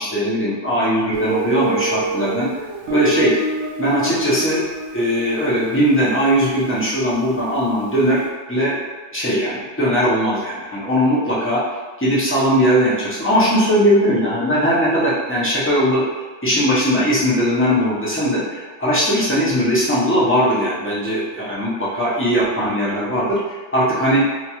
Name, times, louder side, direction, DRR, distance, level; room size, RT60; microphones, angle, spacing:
voice 1, 0.0-2.5 2.9-3.3 3.8-4.6 4.9-8.2 8.5-8.8 9.1-11.6 12.0-16.0 16.4-23.4 23.7-24.2, equal, 20° left, -8 dB, 0.4 m, -19 dB
Guitar, 1.1-7.8, right 3 dB, 75° right, 1.0 m, -29 dB
2.9 x 2.3 x 2.9 m, 1.3 s
omnidirectional pair, 1.4 m